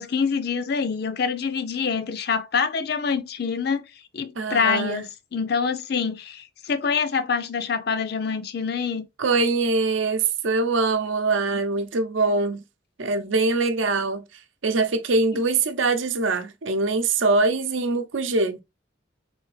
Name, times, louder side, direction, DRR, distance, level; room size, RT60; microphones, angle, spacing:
voice 1, 0.0-3.8 4.1-9.1, left 5 dB, 55° left, 0.5 m, -26 dB
voice 2, 4.4-5.0 9.2-12.6 13.0-14.2 14.6-18.6, right 3 dB, 80° right, 0.7 m, -23 dB
3.5 x 3.4 x 3.2 m
head